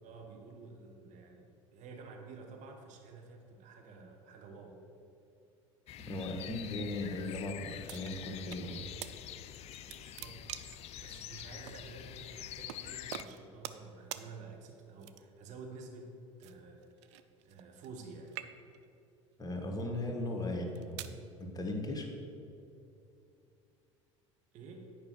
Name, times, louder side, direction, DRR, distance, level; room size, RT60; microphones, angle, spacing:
voice 1, 0.0-4.8 9.8-10.4 11.0-16.9 17.4-18.4 24.5-24.9, right 4 dB, 50° right, 2 dB, 1.4 m, -50 dB
sound 1, 5.9-13.2, left 11 dB, 40° left, 0.4 m, -46 dB
voice 2, 6.0-8.8 19.4-22.1, left 1 dB, 25° left, 2 dB, 1.7 m, -38 dB
sound 2, 7.9-8.6 9.0-9.1 9.5-10.9 11.7-11.8 12.7-12.8 13.1-13.9 14.1-14.3 15.0-15.4 16.4-18.0 18.3-18.9 19.6-19.8 20.5-21.2, right 12 dB, 65° right, 0.5 m, -45 dB
9.5 x 5.2 x 6.3 m, 2.7 s
figure-of-eight pair, 70°, 16 cm